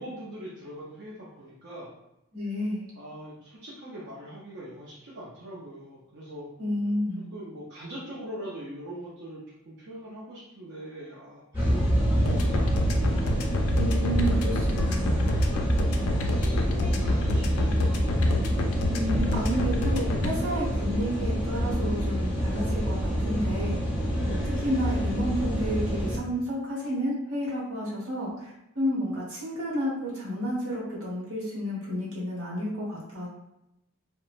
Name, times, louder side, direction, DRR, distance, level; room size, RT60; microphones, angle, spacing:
voice 1, 0.0-1.9 2.9-6.5 7.3-13.1 14.0-14.3 15.3-18.3, right 1 dB, 55° right, -7 dB, 0.6 m, -42 dB
voice 2, 2.3-2.9 6.6-7.2 13.8-15.4 18.9-23.8 24.2-33.3, equal, 80° right, -5 dB, 1.1 m, -31 dB
sound 1, 11.5-26.2, equal, 5° right, 1.0 m, -26 dB
sound 2, 12.3-20.3, left 2 dB, 85° left, 0.4 m, -29 dB
3.0 x 2.1 x 2.4 m, 0.88 s
head